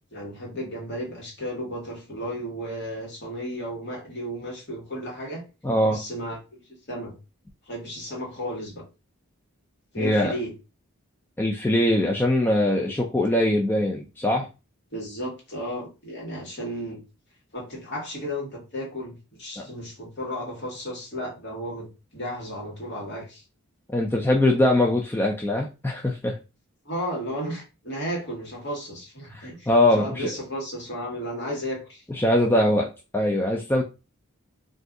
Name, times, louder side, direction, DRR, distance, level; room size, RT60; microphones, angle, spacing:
voice 1, 0.1-5.4 5.9-6.6 6.9-7.1 7.6-8.8 9.9-10.5 14.9-17.0 17.5-21.9 22.1-23.4 26.8-29.7 30.0-32.0, equal, 50° left, -2 dB, 1.4 m, -33 dB
voice 2, 5.6-6.0 10.0-10.3 11.4-14.5 19.6-19.7 23.9-26.4 29.3-30.3 32.1-32.9 33.1-33.8, left 1 dB, 10° left, 0 dB, 0.3 m, -22 dB
2.6 x 2.4 x 3.6 m, 0.29 s
head